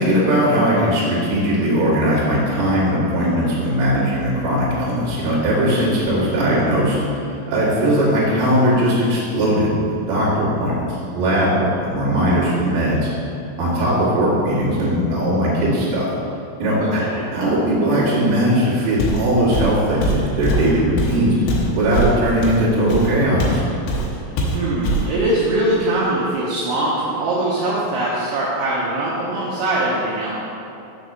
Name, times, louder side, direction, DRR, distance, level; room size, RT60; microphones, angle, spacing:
voice 1, 0.0-10.8 11.1-13.1 13.6-16.1 16.6-17.0 17.3-21.4 21.7-23.6, equal, 50° right, -9 dB, 2.8 m, -19 dB
voice 2, 6.2-6.7 16.8-17.3 24.5-30.3, right 1 dB, 75° right, -6 dB, 2.9 m, -22 dB
Walk footsteps, 19.0-19.3 19.5-23.6 23.9-24.1 24.4-25.1, right 1 dB, 75° left, 3.0 m, -22 dB
7.3 x 4.1 x 6.7 m, 2.7 s
omnidirectional pair, 5.8 m